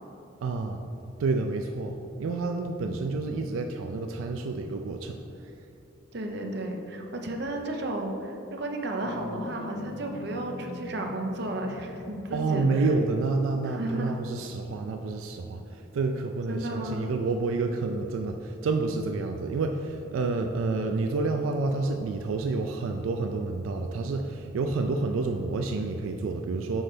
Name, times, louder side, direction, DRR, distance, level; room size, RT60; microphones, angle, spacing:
voice 1, 0.4-0.8 1.2-5.5 12.3-26.8, right 3 dB, 85° right, 4 dB, 0.3 m, -29 dB
voice 2, 6.1-12.9 13.6-14.2 16.5-17.1, right 1 dB, 55° right, 2 dB, 0.7 m, -33 dB
sound 1, 9.0-14.8, left 2 dB, 45° left, 0.4 m, -43 dB
6.2 x 4.3 x 5.0 m, 2.7 s
head